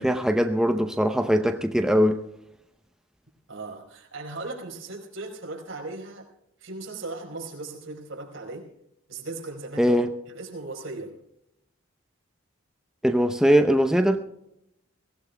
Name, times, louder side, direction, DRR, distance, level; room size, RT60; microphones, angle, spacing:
voice 1, 0.0-2.2 9.8-10.1 13.0-14.2, equal, 5° right, 0.7 m, -21 dB
voice 2, 3.5-6.3 6.6-8.7 9.1-11.2, right 3 dB, 70° right, 4.5 m, -38 dB
23.0 x 17.5 x 2.3 m
head